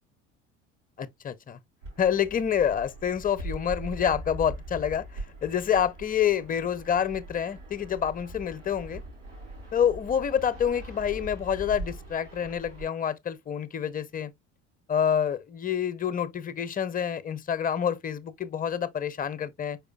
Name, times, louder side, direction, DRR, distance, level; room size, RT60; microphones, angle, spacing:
voice 1, 1.0-1.6 2.0-9.0 9.7-14.3 14.9-19.8, left 8 dB, 25° left, 0.6 m, -27 dB
Fixed-wing aircraft airplane, 1.8-12.8, right 1 dB, 90° right, 2.7 m, -41 dB
4.9 x 4.7 x 2.3 m
figure-of-eight pair, 60°, 35 cm